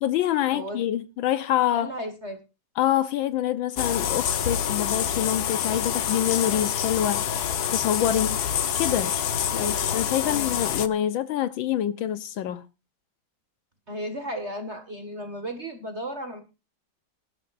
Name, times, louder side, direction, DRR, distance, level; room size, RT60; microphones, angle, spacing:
voice 1, 0.0-1.9 2.8-8.4 8.7-9.1 9.5-12.6, left 11 dB, 75° left, 1.6 m, -26 dB
voice 2, 1.7-2.4 9.6-9.8 10.2-10.5 13.9-16.4, equal, 35° right, 1.9 m, -34 dB
sound 1, 3.8-10.9, left 9 dB, 60° left, 1.3 m, -27 dB
20.0 x 11.5 x 2.5 m
omnidirectional pair, 2.2 m